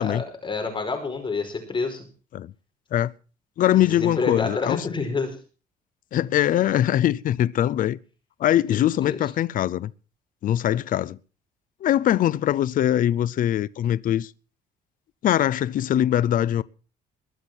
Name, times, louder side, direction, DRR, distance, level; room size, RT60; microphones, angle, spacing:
voice 1, 0.0-2.1 3.7-5.3 8.7-9.2, left 4 dB, 30° left, 5.0 m, -28 dB
voice 2, 3.6-4.9 6.1-8.0 8.4-9.9 10.4-11.2 11.8-14.3 15.2-16.6, left 11 dB, 55° left, 0.6 m, -22 dB
22.0 x 7.4 x 6.2 m
cardioid pair, 110°, 17 cm